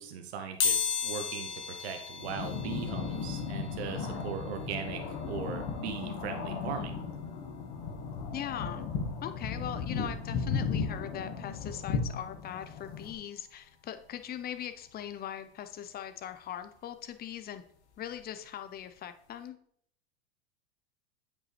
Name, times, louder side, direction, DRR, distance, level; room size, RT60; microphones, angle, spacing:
voice 1, 0.0-7.0, right 7 dB, 70° right, 6 dB, 0.9 m, -39 dB
sound 1, 0.6-11.3 11.7-11.8 13.0-13.1 13.4-15.5 15.8-18.4 18.8-19.0 19.3-19.4, left 6 dB, 80° left, 1.3 m, -38 dB
sound 2, 2.2-13.1, left 5 dB, 50° left, 1.7 m, -36 dB
voice 2, 8.3-8.9 9.2-17.6 18.0-19.6, left 10 dB, 30° left, 10 dB, 0.7 m, -40 dB
8.3 x 5.3 x 3.3 m, 0.65 s
hypercardioid pair, 95°, 34 cm